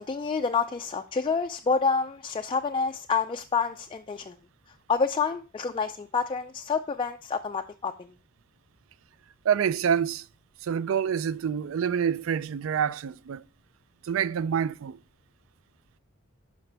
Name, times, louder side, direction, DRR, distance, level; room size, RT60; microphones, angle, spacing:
voice 1, 0.0-4.3 4.9-7.9, left 5 dB, 25° left, 0.3 m, -28 dB
voice 2, 9.4-10.2 10.6-13.4 14.0-15.0, right 8 dB, 65° right, 0.4 m, -27 dB
11.5 x 5.2 x 3.3 m
head